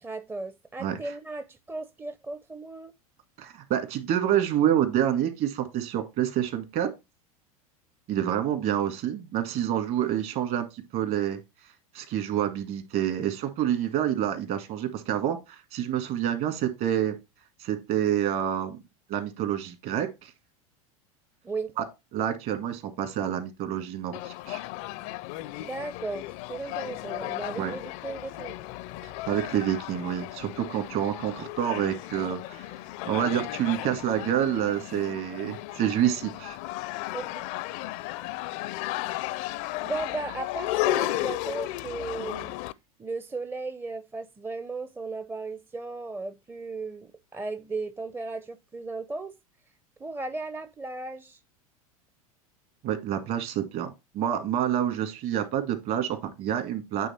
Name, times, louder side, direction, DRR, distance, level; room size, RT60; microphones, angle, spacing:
voice 1, 0.0-2.9 21.4-21.7 25.6-28.6 37.1-37.5 39.2-42.5 43.0-49.4 50.0-51.4, right 3 dB, 10° right, 0.5 m, -36 dB
voice 2, 3.4-6.9 8.1-11.4 11.9-17.2 17.6-18.8 19.1-20.3 21.8-21.9 22.1-24.6 27.6-27.7 29.0-32.7 33.1-36.6 52.8-57.1, right 10 dB, 50° right, 1.9 m, -28 dB
sound 1, 24.1-42.7, left 17 dB, 55° left, 0.4 m, -34 dB
9.0 x 3.4 x 4.3 m
hypercardioid pair, 95°, 19 cm